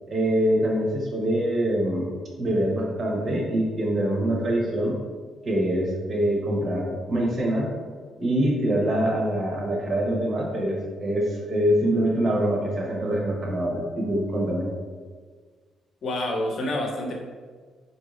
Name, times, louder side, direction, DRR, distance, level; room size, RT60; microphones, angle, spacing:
voice 1, 0.1-2.1 2.4-5.0 5.4-7.7 8.2-14.7, right 1 dB, 40° right, -2 dB, 0.8 m, -24 dB
voice 2, 16.0-17.1, left 1 dB, 55° left, 0 dB, 0.8 m, -27 dB
4.3 x 2.6 x 3.1 m, 1.5 s
cardioid pair, 90°, 0 cm